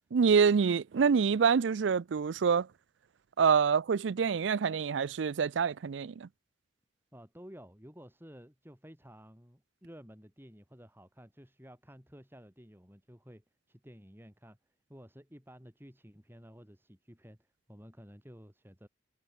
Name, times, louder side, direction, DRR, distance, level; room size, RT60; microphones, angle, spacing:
voice 1, 0.1-2.7 3.4-6.3, right 6 dB, 85° right, 0.4 m, -26 dB
voice 2, 7.1-14.6 14.9-18.9, equal, 10° right, 7.2 m, -53 dB
head